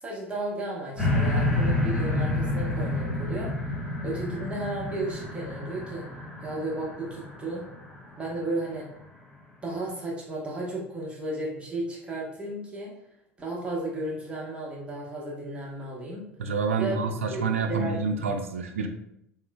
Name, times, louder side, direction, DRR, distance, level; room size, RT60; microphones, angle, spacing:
voice 1, 0.0-3.5 4.0-6.1 6.4-7.6 8.2-8.9 9.6-12.9 13.4-16.3 16.8-17.0 17.3-17.4 17.7-18.1, right 2 dB, 15° right, -4 dB, 1.1 m, -33 dB
sound 1, 1.0-8.3 8.9-9.0, left 2 dB, 5° left, 1.4 m, -29 dB
voice 2, 16.4-18.9, right 4 dB, 75° right, 6 dB, 0.4 m, -28 dB
3.0 x 3.0 x 2.3 m, 0.75 s
figure-of-eight pair, 70°, 7 cm